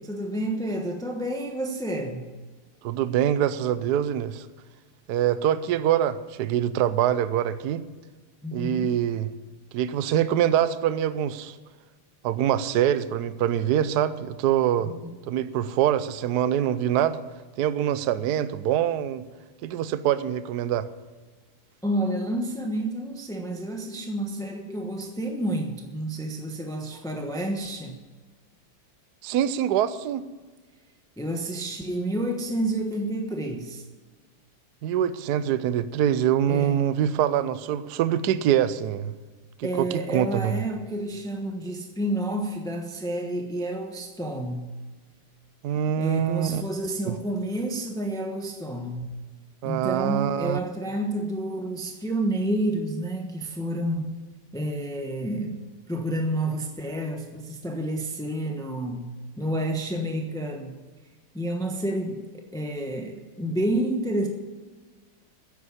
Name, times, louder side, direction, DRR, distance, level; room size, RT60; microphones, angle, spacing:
voice 1, 0.0-2.3 8.4-8.9 14.8-15.0 21.8-27.9 31.2-33.8 36.5-36.7 39.6-44.7 45.9-49.1 49.6-54.1 54.5-60.7 61.3-64.3, right 1 dB, 5° left, 3 dB, 0.4 m, -29 dB
voice 2, 2.8-4.5 5.1-7.9 8.5-9.3 9.7-11.6 12.2-14.9 15.3-17.2 17.6-19.2 19.6-20.9 29.2-30.2 34.8-39.1 39.6-40.6 45.6-46.6 47.1-47.2 49.6-50.6, right 10 dB, 70° right, 14 dB, 1.0 m, -24 dB
10.0 x 8.4 x 9.7 m, 1.3 s
omnidirectional pair, 2.4 m